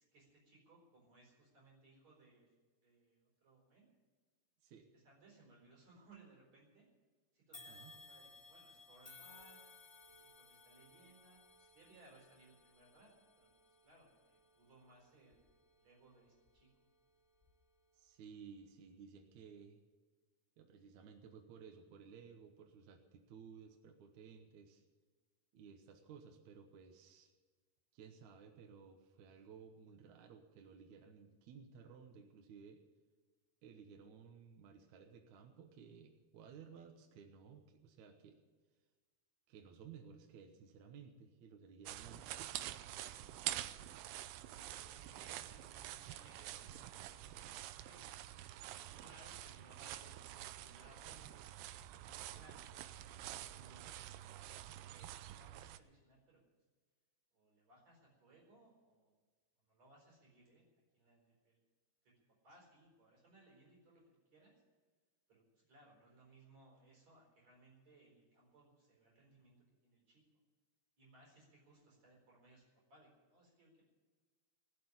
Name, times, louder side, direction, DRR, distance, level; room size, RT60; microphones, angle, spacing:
voice 1, 0.0-2.5 2.8-3.9 4.9-6.9 7.3-9.6 10.1-15.5 15.8-16.9 44.3-47.2 47.8-48.1 48.6-51.4 52.0-53.9 54.4-56.4 57.3-59.2 59.7-60.6 60.9-61.6 62.0-64.5 65.3-69.6 69.8-70.2 71.0-73.8, right 2 dB, 45° right, -2 dB, 5.3 m, -65 dB
sound 1, 7.5-16.8 17.3-17.5 18.5-18.6, left 3 dB, 10° left, 1.9 m, -61 dB
voice 2, 7.7-8.0 17.9-19.8 20.6-24.8 25.5-27.3 27.9-32.8 33.6-38.4 39.5-42.8 43.2-43.4, right 6 dB, 65° right, 4 dB, 2.0 m, -57 dB
sound 2, 41.9-55.8, right 13 dB, 85° right, 2.6 m, -47 dB
20.0 x 6.9 x 9.7 m, 1.4 s
omnidirectional pair, 4.5 m